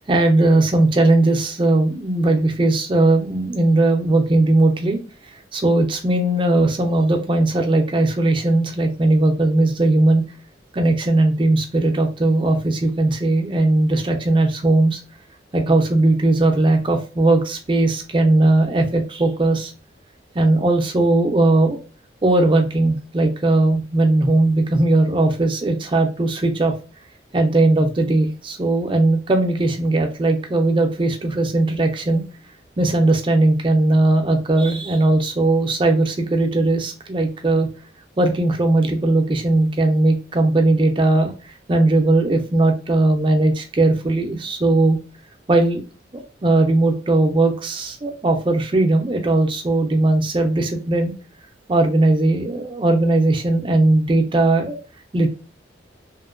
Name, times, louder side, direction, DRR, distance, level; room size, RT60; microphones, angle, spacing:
voice 1, 0.1-5.0 5.5-10.2 10.7-15.0 15.5-19.7 20.3-21.8 22.2-26.7 27.3-32.2 32.8-37.7 38.2-41.3 41.7-45.0 45.5-45.8 46.1-51.1 51.7-54.8 55.1-55.3, right 2 dB, 25° right, 3 dB, 0.4 m, -18 dB
2.9 x 2.1 x 2.4 m, 0.34 s
head